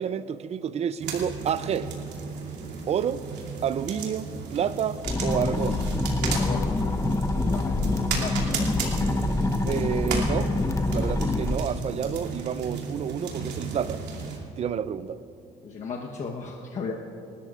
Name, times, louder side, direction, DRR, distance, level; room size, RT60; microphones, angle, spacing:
voice 1, 0.0-1.9 2.9-3.2 3.6-5.9 9.7-10.5 10.9-14.0 14.6-15.2, right 8 dB, 40° right, 0.5 m, -29 dB
sound 1, 1.0-14.4, right 5 dB, 80° right, 2.7 m, -35 dB
sound 2, 5.0-11.6, left 2 dB, 20° left, 0.8 m, -26 dB
voice 2, 6.3-6.6 7.5-7.8 8.2-8.5 9.0-9.2 15.6-16.9, left 5 dB, 45° left, 1.1 m, -35 dB
28.5 x 13.0 x 2.5 m
cardioid pair, 110°, 17 cm